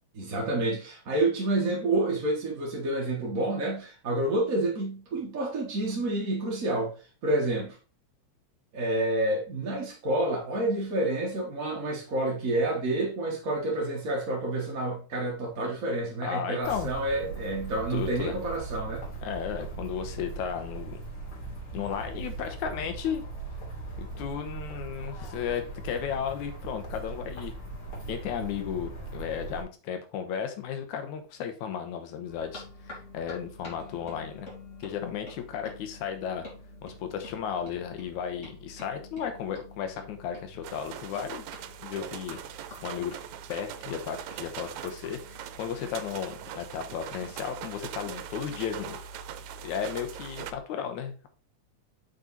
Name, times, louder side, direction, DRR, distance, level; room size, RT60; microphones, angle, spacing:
voice 1, 0.1-6.9 7.2-7.8 8.7-19.0, right 2 dB, 40° right, 1.3 m, -29 dB
voice 2, 16.2-16.9 17.9-18.3 19.2-21.0 21.7-23.2 24.0-27.5 28.1-34.5 34.8-36.5 36.8-41.4 41.8-42.4 42.8-43.1 43.5-49.0 49.6-51.3, left 8 dB, 85° left, 2.4 m, -34 dB
sound 1, 16.6-29.6, right 3 dB, 45° left, 3.7 m, -39 dB
sound 2, 32.2-50.6, left 1 dB, 25° left, 2.5 m, -48 dB
sound 3, 40.6-50.5, right 11 dB, 80° right, 2.0 m, -41 dB
6.6 x 5.1 x 4.0 m
omnidirectional pair, 3.3 m